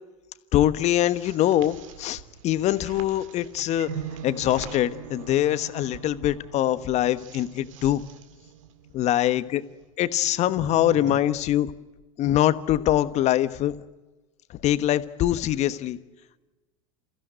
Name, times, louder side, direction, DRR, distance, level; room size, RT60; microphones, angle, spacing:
voice 1, 0.5-3.9 4.2-8.0 8.9-9.6 10.0-11.7 12.2-13.7 14.6-16.0, left 13 dB, 45° left, 13 dB, 1.3 m, -23 dB
sound 1, 0.8-11.2, right 8 dB, 75° right, 2.0 m, -42 dB
29.0 x 15.5 x 9.1 m, 1.2 s
hypercardioid pair, 100°, 17 cm